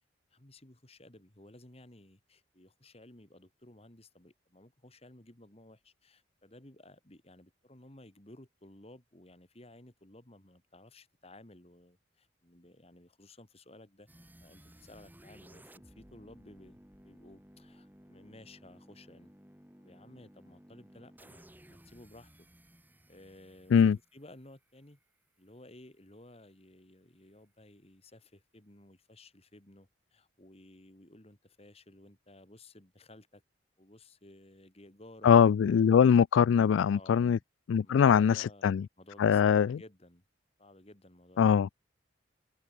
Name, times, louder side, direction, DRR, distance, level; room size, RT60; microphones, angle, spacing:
voice 1, 0.3-14.1 14.4-19.3 19.8-22.5 23.1-25.0 25.4-33.4 33.8-35.3 36.9-37.4 37.8-40.2 40.6-41.4, left 1 dB, 30° left, 2.2 m, -55 dB
sound 1, 14.1-25.0, equal, 10° right, 4.0 m, -57 dB
voice 2, 35.2-37.4 37.7-38.3 38.6-38.8 39.2-39.8 41.4-41.7, left 7 dB, 75° left, 0.3 m, -22 dB
head